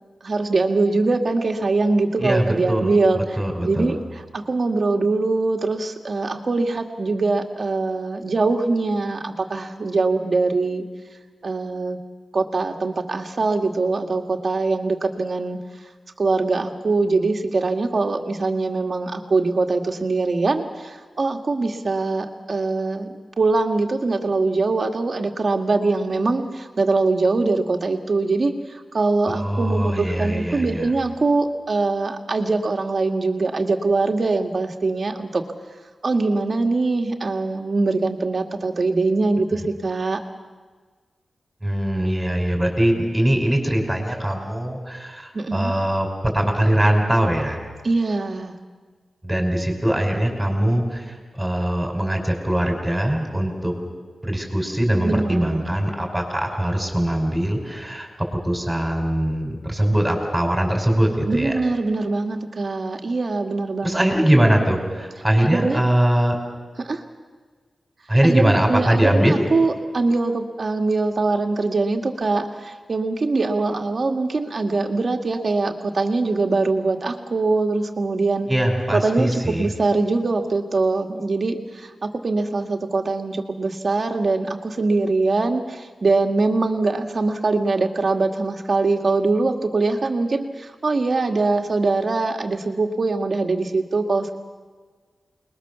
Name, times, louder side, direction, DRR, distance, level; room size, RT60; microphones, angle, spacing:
voice 1, 0.2-3.4 3.6-10.8 11.4-12.0 12.3-15.6 16.2-35.4 36.0-40.2 45.3-45.7 47.8-48.6 55.0-55.6 61.3-64.1 65.4-65.8 66.8-67.0 68.2-78.5 78.9-94.4, right 3 dB, 45° right, 4 dB, 2.1 m, -22 dB
voice 2, 2.2-4.0 29.3-30.9 41.6-46.1 46.3-47.6 49.2-53.7 54.2-58.1 58.4-61.5 63.8-66.4 68.1-69.4 78.5-79.7, right 1 dB, 10° right, 2 dB, 5.5 m, -21 dB
28.5 x 21.0 x 7.0 m, 1.5 s
wide cardioid pair, 140°, 0 cm